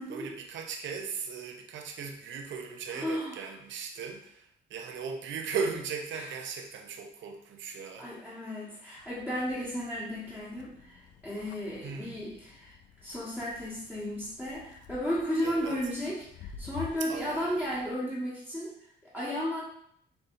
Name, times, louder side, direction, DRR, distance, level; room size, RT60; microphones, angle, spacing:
voice 1, 0.0-8.1 11.8-12.2 15.4-15.7 17.1-17.6, right 5 dB, 70° right, 3 dB, 0.7 m, -37 dB
voice 2, 2.9-3.5 6.1-6.3 8.0-19.6, equal, 5° left, -9 dB, 1.3 m, -34 dB
sound 1, 9.0-17.9, left 8 dB, 70° left, 0.4 m, -50 dB
6.6 x 2.6 x 2.6 m, 0.69 s
cardioid pair, 90°, 20 cm